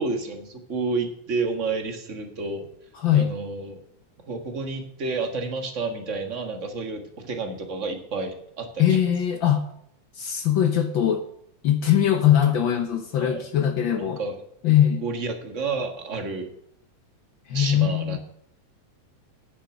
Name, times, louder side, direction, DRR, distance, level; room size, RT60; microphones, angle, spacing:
voice 1, 0.0-2.7 3.1-3.8 4.2-9.0 13.2-13.5 14.0-14.4 15.0-16.5 17.5-18.2, right 3 dB, 35° right, 4 dB, 1.3 m, -30 dB
voice 2, 3.0-3.3 8.8-9.7 10.1-11.2 11.6-14.2 14.6-15.0 17.5-18.2, left 10 dB, 90° left, 6 dB, 1.0 m, -21 dB
10.5 x 8.2 x 6.0 m, 0.74 s
omnidirectional pair, 3.4 m